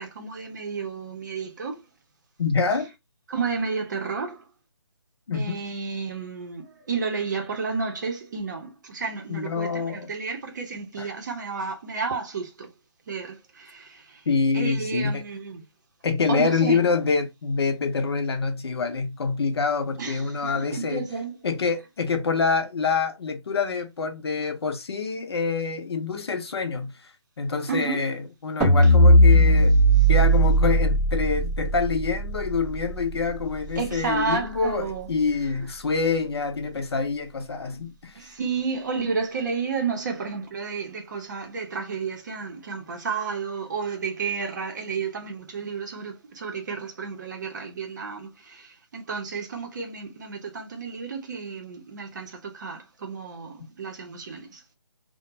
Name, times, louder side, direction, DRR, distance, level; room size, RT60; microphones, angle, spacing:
voice 1, 0.0-1.8 3.3-4.4 5.3-12.7 13.1-14.2 14.5-15.6 16.3-16.9 20.0-21.3 27.7-28.0 33.8-35.1 38.1-54.6, right 5 dB, 40° right, 0.7 m, -31 dB
voice 2, 2.4-2.9 5.3-5.6 9.3-10.1 11.0-11.1 14.3-15.2 16.0-21.0 21.4-26.9 27.4-29.8 30.1-38.3, left 4 dB, 60° left, 0.6 m, -26 dB
sound 1, 28.6-34.9, right 1 dB, 5° right, 0.4 m, -19 dB
2.4 x 2.1 x 2.9 m
figure-of-eight pair, 155°, 15 cm